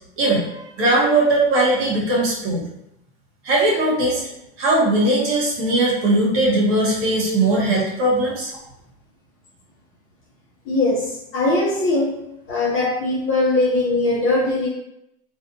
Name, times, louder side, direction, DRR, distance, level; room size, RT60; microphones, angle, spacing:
voice 1, 0.2-2.6 3.4-4.2 4.6-8.5, right 2 dB, 45° right, -4 dB, 1.1 m, -19 dB
voice 2, 10.7-12.1 12.5-14.7, left 2 dB, 40° left, -6 dB, 0.9 m, -20 dB
2.6 x 2.5 x 2.6 m, 0.83 s
supercardioid pair, 120°, 32 cm